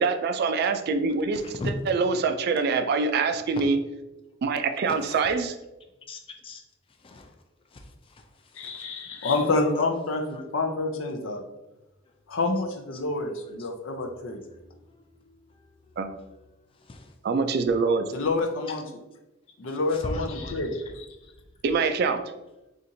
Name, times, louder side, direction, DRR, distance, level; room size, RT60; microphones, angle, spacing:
voice 1, 0.0-3.8 4.4-5.6 16.0-16.2 17.2-18.1 21.6-22.2, right 4 dB, 55° right, 8 dB, 0.3 m, -25 dB
voice 2, 6.1-6.6 7.0-7.3 7.7-7.8 8.6-9.3 9.8-9.9 14.6-15.4 16.9-17.1 20.0-20.9, left 2 dB, 30° left, 5 dB, 0.4 m, -38 dB
voice 3, 8.5-11.4 12.3-14.4 18.1-19.0 19.6-21.1, left 3 dB, 80° left, 4 dB, 0.5 m, -28 dB
4.2 x 2.5 x 2.6 m, 0.98 s
head